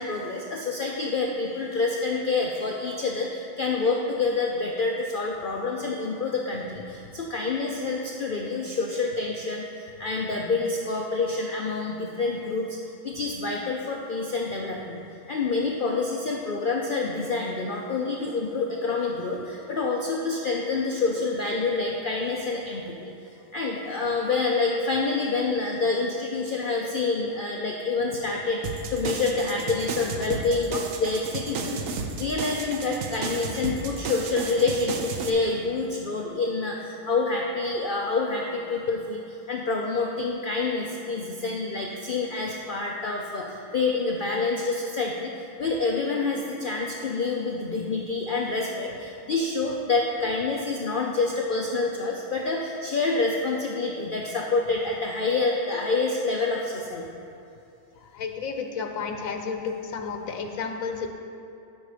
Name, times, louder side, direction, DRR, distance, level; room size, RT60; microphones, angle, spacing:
voice 1, 0.0-12.8 13.0-15.0 15.3-23.1 23.5-45.3 45.6-57.0, left 3 dB, 50° left, -1 dB, 0.7 m, -27 dB
sound 1, 28.6-35.3, right 4 dB, 80° right, 1.1 m, -33 dB
voice 2, 58.1-61.1, left 5 dB, 90° left, 5 dB, 1.2 m, -32 dB
12.0 x 5.3 x 5.0 m, 2.7 s
omnidirectional pair, 1.4 m